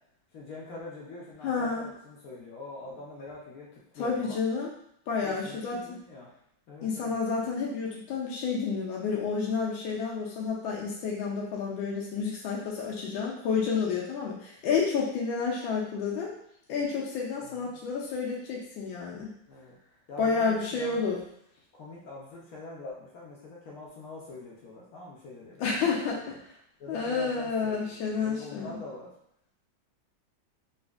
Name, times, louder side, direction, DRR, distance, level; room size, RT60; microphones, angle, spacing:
voice 1, 0.3-4.4 5.2-6.3 6.7-7.2 17.4-17.8 19.5-19.8 20.1-21.1 21.7-26.4 26.8-29.1, left 2 dB, 65° left, -4 dB, 0.9 m, -44 dB
voice 2, 1.4-1.9 4.0-4.7 5.1-5.8 6.8-16.3 16.7-19.3 20.2-21.2 25.6-26.2 26.9-28.8, left 5 dB, 85° left, -3 dB, 1.4 m, -30 dB
4.0 x 2.5 x 2.3 m, 0.73 s
omnidirectional pair, 2.1 m